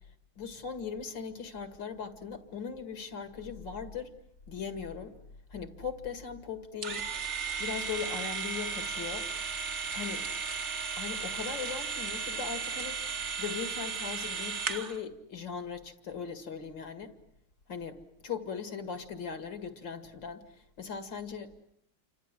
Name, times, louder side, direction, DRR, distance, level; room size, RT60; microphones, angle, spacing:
voice 1, 0.4-4.1 4.5-5.2 5.5-7.1 7.6-9.3 9.9-10.3 11.0-17.2 17.7-21.7, left 6 dB, 65° left, 2.7 m, -39 dB
sound 1, 6.8-15.0, right 5 dB, 40° right, 1.4 m, -35 dB
29.5 x 26.0 x 7.6 m
omnidirectional pair, 2.2 m